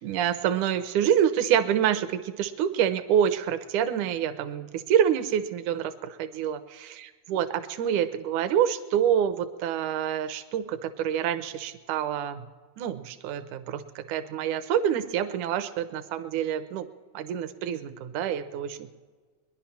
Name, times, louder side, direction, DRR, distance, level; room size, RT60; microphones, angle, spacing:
voice 1, 0.0-6.9 7.3-12.4 12.8-16.9 17.1-18.9, right 9 dB, 75° right, 11 dB, 2.1 m, -27 dB
22.0 x 11.0 x 5.8 m, 1.4 s
omnidirectional pair, 3.9 m